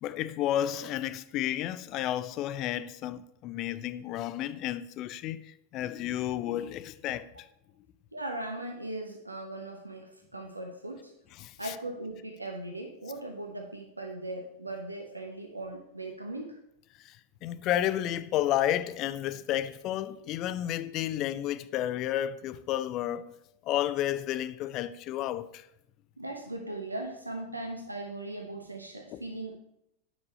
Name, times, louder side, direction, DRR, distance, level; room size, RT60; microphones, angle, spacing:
voice 1, 0.0-7.5 11.4-11.7 17.0-17.2 17.4-23.3 23.6-25.7 29.1-29.2, left 12 dB, 35° left, 0.4 m, -31 dB
voice 2, 8.1-11.1 11.6-16.6 26.2-29.6, right 2 dB, 85° right, 1.0 m, -39 dB
9.1 x 5.4 x 4.1 m
figure-of-eight pair, 90°, 0 cm